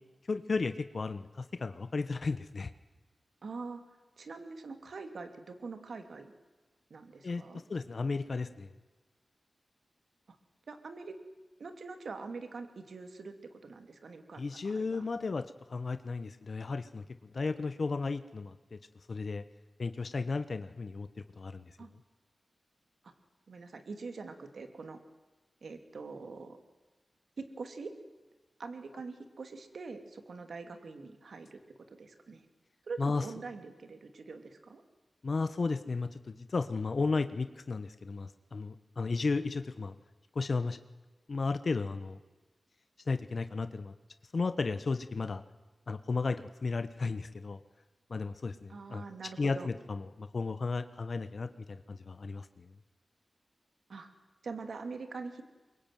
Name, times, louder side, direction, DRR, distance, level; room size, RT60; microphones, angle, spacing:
voice 1, 0.3-2.7 7.2-7.4 7.7-8.7 14.4-17.0 17.3-18.8 19.1-19.4 19.8-21.1 21.4-21.7 33.0-33.2 35.2-39.9 40.3-40.8 41.3-42.2 43.1-43.9 44.3-45.4 45.9-47.6 48.1-49.0 49.4-52.7, left 4 dB, 60° left, 11 dB, 1.2 m, -34 dB
voice 2, 3.4-3.8 4.2-6.3 6.9-7.6 10.3-10.4 10.7-11.2 11.6-15.0 21.8-21.9 23.0-23.1 23.5-25.0 25.6-26.6 27.4-27.9 28.6-31.6 31.9-32.4 32.9-34.8 48.7-49.7 53.9-54.1 54.4-55.4, right 4 dB, 75° right, 8 dB, 2.9 m, -44 dB
24.0 x 23.0 x 9.4 m, 1.2 s
wide cardioid pair, 70°, 0 cm